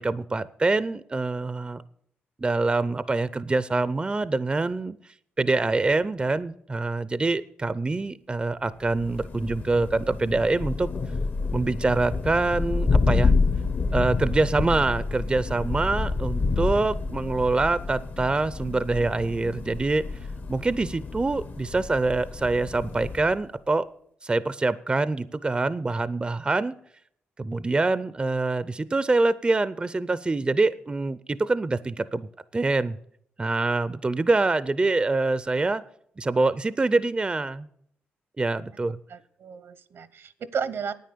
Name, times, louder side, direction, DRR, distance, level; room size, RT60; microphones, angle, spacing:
voice 1, 0.0-1.8 2.4-5.0 5.4-10.9 11.5-13.3 13.9-20.0 20.5-23.9 24.2-26.7 27.4-33.0 33.4-35.8 36.2-37.7 38.4-39.0, right 3 dB, 25° right, 17 dB, 0.5 m, -25 dB
Thunder, 8.8-23.4, left 4 dB, 50° left, 0.9 m, -28 dB
voice 2, 39.1-40.9, right 6 dB, 65° right, 16 dB, 0.9 m, -33 dB
9.3 x 9.3 x 6.8 m, 0.67 s
cardioid pair, 75°, 4 cm